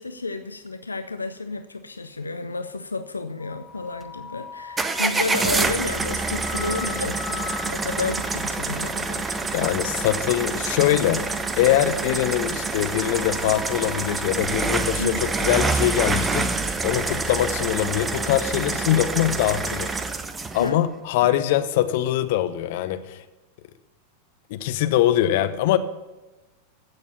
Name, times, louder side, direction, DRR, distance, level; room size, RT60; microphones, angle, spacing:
voice 1, 0.0-9.5 15.0-15.3 20.6-20.8 21.2-21.5, left 3 dB, 80° left, 9 dB, 0.6 m, -31 dB
sound 1, 3.4-10.4 10.9-12.3 12.6-16.0, left 10 dB, 35° left, 1.3 m, -42 dB
sound 2, 4.8-20.7, right 3 dB, 15° right, 0.7 m, -27 dB
voice 2, 9.5-11.2 11.6-20.0 20.5-23.2 24.5-25.8, left 12 dB, 50° left, 11 dB, 0.8 m, -23 dB
15.5 x 6.6 x 5.8 m, 1.1 s
figure-of-eight pair, 90°, 0 cm